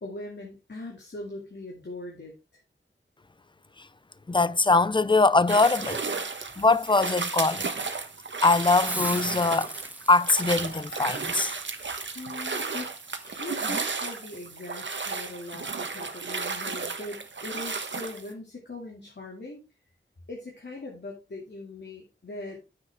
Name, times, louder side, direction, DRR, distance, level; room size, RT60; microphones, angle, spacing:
voice 1, 0.0-2.6 12.1-12.9 13.2-19.6 20.3-22.7, left 2 dB, 60° left, 2.5 m, -40 dB
voice 2, 4.3-6.0 6.6-7.7 8.4-9.7 10.1-11.5, left 3 dB, 25° left, 0.5 m, -22 dB
sound 1, 5.5-18.3, right 4 dB, 70° right, 1.2 m, -33 dB
Hiss, 8.8-14.5, right 1 dB, 10° right, 0.8 m, -41 dB
9.5 x 7.7 x 3.5 m
wide cardioid pair, 80°, 20 cm